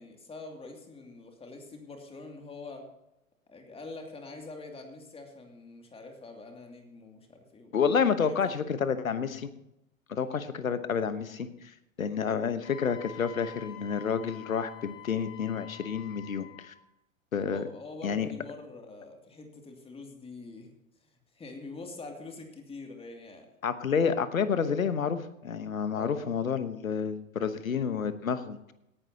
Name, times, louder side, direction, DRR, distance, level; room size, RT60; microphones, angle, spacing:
voice 1, 0.0-2.9 3.5-7.7 8.2-8.8 10.1-10.4 17.5-20.7 21.0-21.1 21.3-23.5 25.9-26.2, left 3 dB, 15° left, 3 dB, 2.6 m, -45 dB
voice 2, 7.7-9.5 10.1-11.5 12.0-16.7 17.3-17.6 18.0-18.3 23.6-28.7, left 6 dB, 75° left, 12 dB, 1.2 m, -29 dB
Wind instrument woodwind instrument, 12.6-16.8, left 12 dB, 30° left, 3.4 m, -48 dB
18.0 x 11.0 x 2.9 m, 0.84 s
figure-of-eight pair, 95°, 41 cm